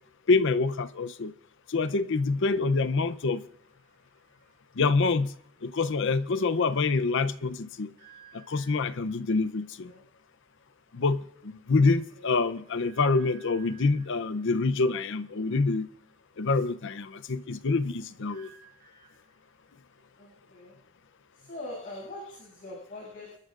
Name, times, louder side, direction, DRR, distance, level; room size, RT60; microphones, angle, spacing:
voice 1, 0.3-1.3 1.7-3.4 4.8-5.3 5.6-7.9 8.3-9.9 10.9-15.9 16.4-18.5, left 3 dB, 60° left, 0.7 m, -26 dB
sound 1, 2.3-6.7 8.0-9.2 10.4-10.5 10.8-11.0 11.4-11.5 12.6-14.3 16.4-20.5, right 6 dB, 50° right, 7.3 m, -59 dB
voice 2, 20.2-20.7 21.3-23.4, left 1 dB, 40° left, 7.1 m, -42 dB
30.0 x 13.0 x 2.5 m
head